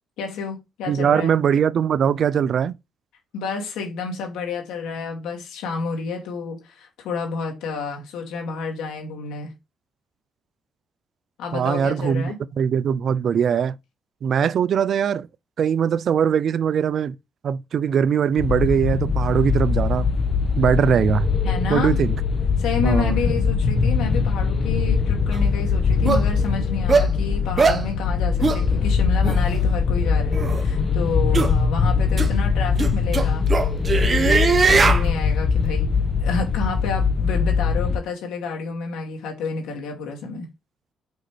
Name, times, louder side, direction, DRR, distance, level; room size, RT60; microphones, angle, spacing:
voice 1, 0.2-1.3 3.3-9.5 11.4-12.4 21.4-22.0 22.6-33.5 33.9-35.9 36.2-40.5, left 5 dB, 90° left, 2.5 m, -30 dB
voice 2, 0.9-2.7 11.5-13.7 14.2-15.3 15.6-17.1 17.4-20.1 20.6-21.3 21.7-22.1 22.8-23.2, right 8 dB, 60° right, 0.5 m, -21 dB
sound 1, 18.4-38.0, left 5 dB, 45° left, 1.2 m, -21 dB
sound 2, 25.3-25.4 26.1-26.2 26.9-27.1 27.6-27.8 28.4-28.6 29.2-29.4 30.3-30.6 31.3-31.5 32.2-32.3 32.8-35.0, right 4 dB, 35° right, 1.1 m, -19 dB
6.2 x 5.3 x 3.3 m
cardioid pair, 90°, 0 cm